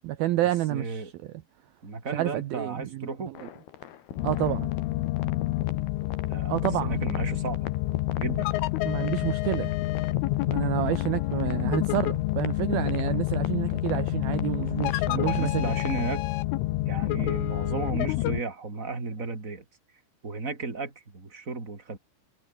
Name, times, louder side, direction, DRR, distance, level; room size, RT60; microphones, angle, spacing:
voice 1, 0.0-1.1 2.1-3.5 4.2-4.7 6.5-7.0 8.8-9.7 10.5-15.6, right 15 dB, 75° right, 2.3 m, -29 dB
voice 2, 0.7-1.1 1.8-3.3 6.2-7.7 8.2-8.5 15.2-16.3 16.9-19.6 20.2-22.0, right 3 dB, 20° right, 3.7 m, -34 dB
sound 1, 3.3-16.1, left 10 dB, 60° left, 3.7 m, -41 dB
sound 2, 4.2-18.4, left 17 dB, 90° left, 3.6 m, -28 dB
omnidirectional pair, 5.5 m